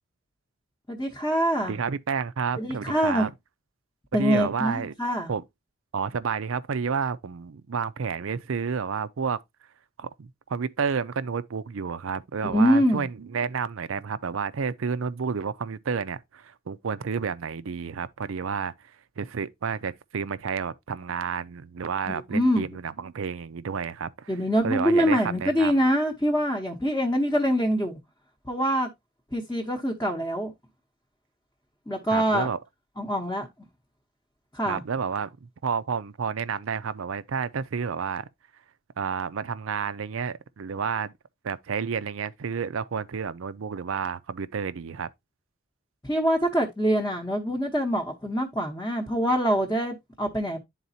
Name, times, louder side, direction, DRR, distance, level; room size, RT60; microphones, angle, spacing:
voice 1, 0.9-1.8 2.6-3.3 4.1-5.3 12.4-13.0 22.1-22.7 24.3-28.0 28.4-28.9 29.3-30.5 31.9-32.5 33.0-33.5 34.5-34.8 46.0-50.6, equal, 15° left, 0.8 m, -24 dB
voice 2, 1.6-3.3 4.1-4.9 5.3-5.4 5.9-9.4 10.0-24.3 24.6-25.8 32.1-32.6 34.7-38.3 39.0-41.1 41.4-45.1, right 6 dB, 70° right, 0.5 m, -30 dB
11.0 x 4.0 x 2.7 m
head